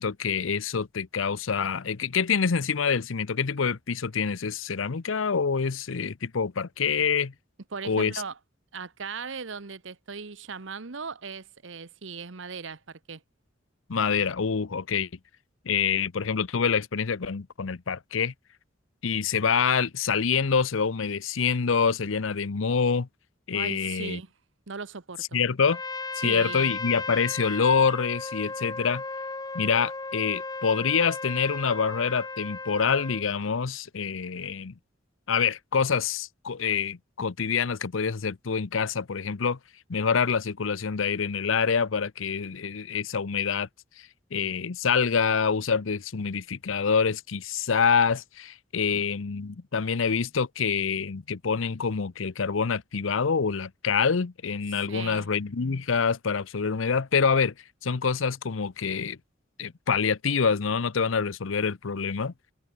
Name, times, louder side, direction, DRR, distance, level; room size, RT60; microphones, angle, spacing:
voice 1, 0.0-7.3 7.8-8.2 13.9-15.1 15.6-18.3 19.0-23.1 23.5-24.2 25.3-25.8 26.1-29.0 29.5-34.7 35.3-39.6 39.9-43.7 44.0-57.5 57.8-59.2 59.6-62.3, left 6 dB, 90° left, 0.7 m, -26 dB
voice 2, 7.7-8.4 8.7-13.2 23.5-24.3 24.7-25.4 26.2-26.8 48.9-49.0 54.7-55.3, right 5 dB, 75° right, 1.1 m, -38 dB
Trumpet, 25.6-33.3, left 3 dB, 20° left, 1.6 m, -35 dB
head